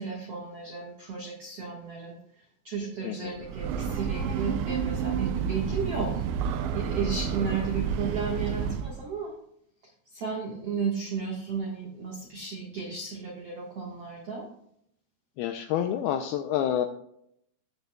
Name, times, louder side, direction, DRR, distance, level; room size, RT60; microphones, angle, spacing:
voice 1, 0.0-2.2 2.6-6.2 6.7-9.3 10.1-14.5, right 5 dB, 65° right, -1 dB, 1.5 m, -33 dB
voice 2, 3.0-3.4 15.4-16.9, left 10 dB, 85° left, 7 dB, 2.2 m, -28 dB
Breathing / Train, 3.3-9.1, right 7 dB, 90° right, 3.0 m, -30 dB
17.5 x 6.7 x 2.3 m, 0.71 s
omnidirectional pair, 5.0 m